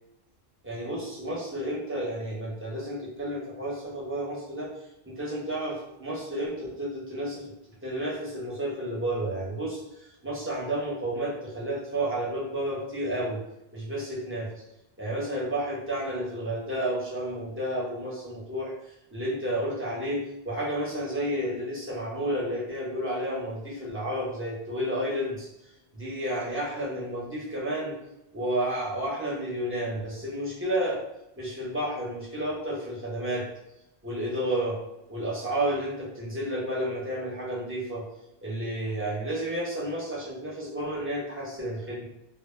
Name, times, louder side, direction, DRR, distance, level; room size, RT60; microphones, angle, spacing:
voice 1, 0.6-4.7 5.1-7.5 7.8-9.8 10.2-13.4 13.7-14.5 15.0-18.7 19.1-25.5 25.9-28.0 28.3-31.0 31.4-33.5 34.0-34.8 35.1-38.0 38.4-42.0, right 1 dB, 15° right, -6 dB, 0.7 m, -31 dB
2.1 x 2.0 x 3.2 m, 0.87 s
omnidirectional pair, 1.0 m